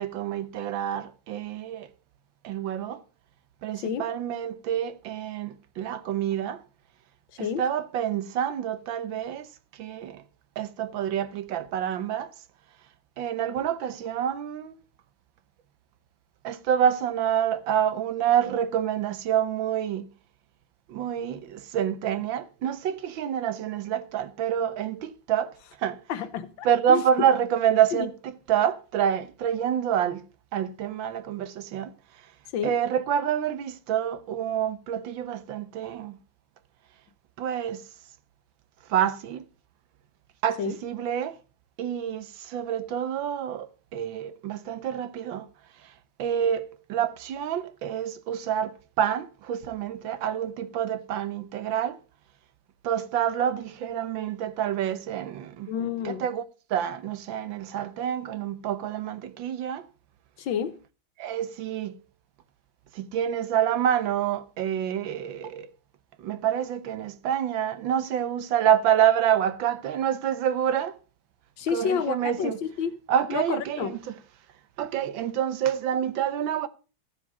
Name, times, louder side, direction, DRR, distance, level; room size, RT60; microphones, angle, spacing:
voice 1, 0.0-1.9 2.4-3.0 3.6-6.6 7.4-10.2 10.6-12.3 13.2-14.8 16.4-20.1 20.9-26.0 26.6-30.2 30.5-32.3 32.6-36.2 37.4-37.8 38.9-39.4 40.4-41.4 41.8-45.5 45.8-45.9 46.2-52.0 52.8-55.7 56.0-56.4 56.7-59.9 61.2-62.0 62.9-65.7 66.2-71.0 71.7-72.6 73.1-74.0 74.8-76.7, right 9 dB, 80° right, 1.6 m, -27 dB
voice 2, 26.1-27.0 27.9-28.1 32.5-32.7 40.6-40.8 55.7-56.3 60.4-60.8 71.6-73.0 73.3-74.0, left 7 dB, 80° left, 1.7 m, -29 dB
14.0 x 7.5 x 5.4 m
omnidirectional pair, 2.1 m